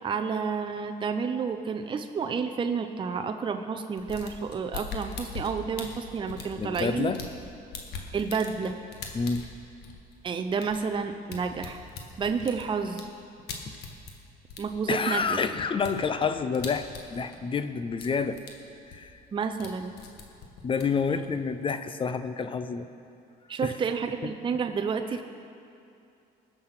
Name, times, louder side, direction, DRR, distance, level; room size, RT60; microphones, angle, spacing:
voice 1, 0.0-7.1 8.1-8.8 10.2-11.8 12.2-13.1 14.6-15.4 19.3-19.9 23.5-25.2, right 5 dB, 30° right, 6 dB, 0.6 m, -30 dB
sound 1, 4.0-7.4 7.7-14.2 14.5-17.6 17.9-18.5 18.8-19.7 20.0-21.6, left 5 dB, 75° left, 1.6 m, -41 dB
voice 2, 6.6-7.2 9.1-9.4 14.9-18.4 18.9-19.1 20.6-22.9 23.6-23.7 24.2-24.3, left 5 dB, 30° left, 10 dB, 0.6 m, -28 dB
20.5 x 6.8 x 5.7 m, 2.5 s
cardioid pair, 110°, 17 cm